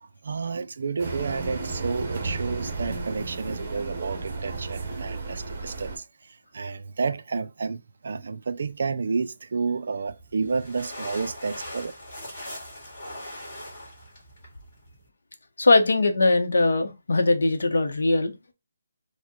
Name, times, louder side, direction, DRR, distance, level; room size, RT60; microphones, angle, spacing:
voice 1, 0.0-11.9, right 4 dB, 50° right, 0.3 m, -31 dB
sound 1, 1.0-6.0, right 3 dB, 25° right, 0.7 m, -33 dB
sound 2, 10.0-15.1, left 1 dB, 25° left, 1.8 m, -40 dB
voice 2, 15.6-18.3, left 2 dB, 75° left, 0.7 m, -21 dB
4.3 x 2.1 x 2.9 m
hypercardioid pair, 175°, 0 cm